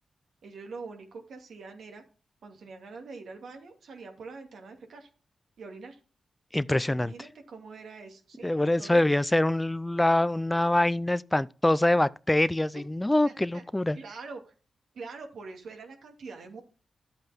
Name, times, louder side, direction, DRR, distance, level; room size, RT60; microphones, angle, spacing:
voice 1, 0.4-2.0 2.4-5.1 5.6-6.0 6.9-9.0 12.7-12.8 13.2-13.6 13.9-14.5 14.9-16.6, right 4 dB, 80° right, 2.5 m, -44 dB
voice 2, 6.5-7.1 8.4-14.0, left 1 dB, 15° left, 0.5 m, -24 dB
11.5 x 8.0 x 3.6 m
cardioid pair, 50°, 0 cm